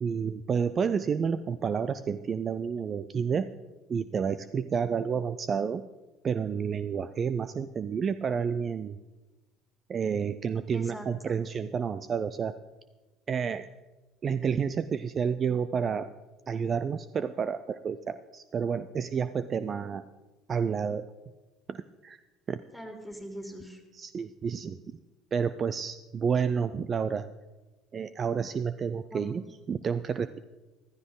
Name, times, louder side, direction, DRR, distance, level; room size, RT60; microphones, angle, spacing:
voice 1, 0.0-3.5 3.9-5.8 6.2-9.0 9.9-12.5 13.3-13.7 14.2-16.1 16.5-20.0 20.5-21.1 21.7-22.2 22.5-22.6 23.9-24.8 25.3-27.3 27.9-30.4, right 6 dB, 40° right, 13 dB, 0.5 m, -30 dB
voice 2, 10.7-11.4 22.7-23.8 29.1-29.4, equal, ahead, 3 dB, 3.2 m, -42 dB
15.0 x 13.0 x 3.9 m, 1.1 s
hypercardioid pair, 65°, 0 cm